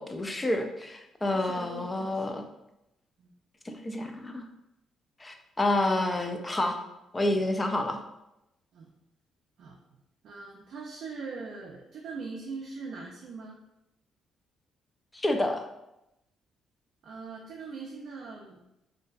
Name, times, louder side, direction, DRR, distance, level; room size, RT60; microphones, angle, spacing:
voice 1, 0.0-2.4 3.7-4.4 5.2-6.8 7.1-8.0 15.1-15.6, left 1 dB, 20° left, 5 dB, 0.3 m, -29 dB
voice 2, 1.3-2.4 3.2-3.3 8.7-8.9 9.6-9.8 10.2-13.6 17.0-18.6, right 4 dB, 70° right, -2 dB, 0.3 m, -41 dB
2.5 x 2.1 x 2.3 m, 0.88 s
cardioid pair, 90°, 0 cm